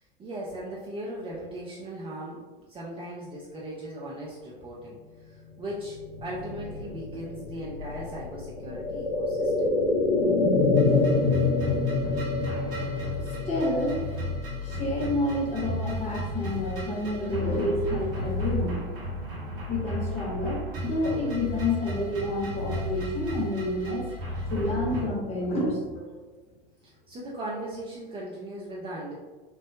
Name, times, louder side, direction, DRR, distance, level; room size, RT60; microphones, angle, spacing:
voice 1, 0.2-2.4 2.7-9.8 26.8-29.1, right 1 dB, 20° right, -5 dB, 0.5 m, -38 dB
sound 1, 5.8-15.6 16.0-16.1, left 3 dB, 85° left, 0.6 m, -27 dB
sound 2, 10.7-25.0, left 1 dB, 65° right, 1.1 m, -34 dB
voice 2, 13.5-14.0 14.6-18.8 19.7-24.1 24.5-26.2, left 1 dB, 25° left, -3 dB, 1.1 m, -29 dB
4.4 x 2.0 x 2.2 m, 1.3 s
figure-of-eight pair, 85°, 30 cm